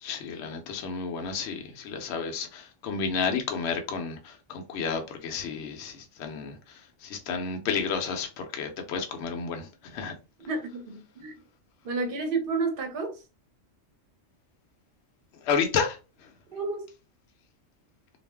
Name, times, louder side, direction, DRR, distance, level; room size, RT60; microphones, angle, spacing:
voice 1, 0.0-10.1 15.4-16.3, left 5 dB, 65° left, 0.8 m, -31 dB
voice 2, 10.5-11.3 11.8-13.2 16.5-16.9, right 3 dB, 50° right, 0.8 m, -30 dB
2.4 x 2.0 x 3.3 m
omnidirectional pair, 1.3 m